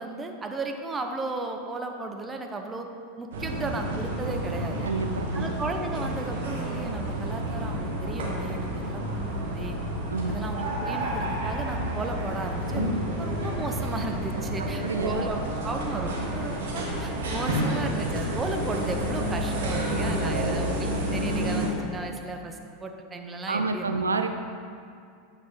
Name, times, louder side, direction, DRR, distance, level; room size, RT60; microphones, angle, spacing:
voice 1, 0.0-2.9 3.2-4.9 5.3-9.8 10.3-24.0, right 2 dB, 20° right, 4 dB, 0.7 m, -35 dB
sound 1, 3.3-21.7, right 1 dB, 70° right, 1.3 m, -30 dB
voice 2, 4.8-5.7 10.1-10.5 14.6-15.3 20.4-20.8 23.5-24.3, right 4 dB, 85° right, 7 dB, 0.4 m, -30 dB
8.6 x 4.5 x 3.7 m, 2.4 s
figure-of-eight pair, 85°, 0 cm